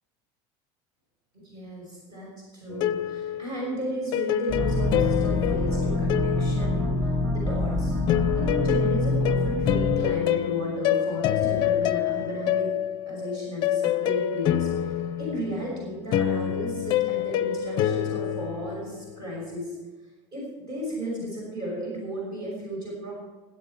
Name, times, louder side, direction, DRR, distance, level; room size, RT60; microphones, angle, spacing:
voice 1, 1.4-6.9 7.3-8.0 8.3-12.7 13.1-19.8 20.3-23.1, equal, 35° right, -4 dB, 5.6 m, -34 dB
sound 1, 2.7-7.4 8.1-19.3, left 11 dB, 40° left, 0.6 m, -27 dB
sound 2, 4.5-10.0, left 1 dB, 20° right, 4.8 m, -26 dB
21.0 x 8.2 x 4.6 m, 1.3 s
cardioid pair, 175°, 12 cm